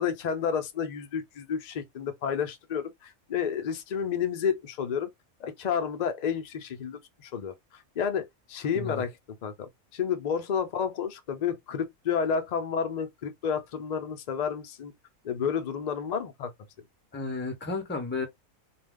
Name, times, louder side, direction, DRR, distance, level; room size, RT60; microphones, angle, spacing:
voice 1, 0.0-5.1 5.4-9.2 9.4-14.9 15.2-16.5, left 7 dB, 85° left, 0.3 m, -31 dB
voice 2, 17.1-18.3, left 3 dB, 15° left, 0.4 m, -32 dB
2.3 x 2.3 x 3.4 m
omnidirectional pair, 1.5 m